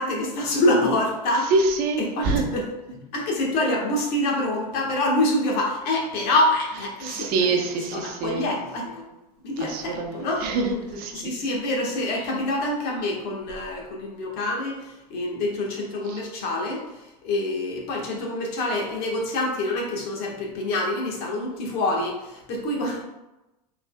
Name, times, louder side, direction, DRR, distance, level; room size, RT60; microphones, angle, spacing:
voice 1, 0.0-1.5 2.0-9.1 9.4-10.5 11.1-23.0, left 1 dB, 50° left, -1 dB, 1.4 m, -26 dB
voice 2, 1.5-2.4 7.0-8.5 9.6-11.2, right 3 dB, 50° right, 3 dB, 0.8 m, -25 dB
5.5 x 3.9 x 2.2 m, 0.99 s
hypercardioid pair, 110°, 20 cm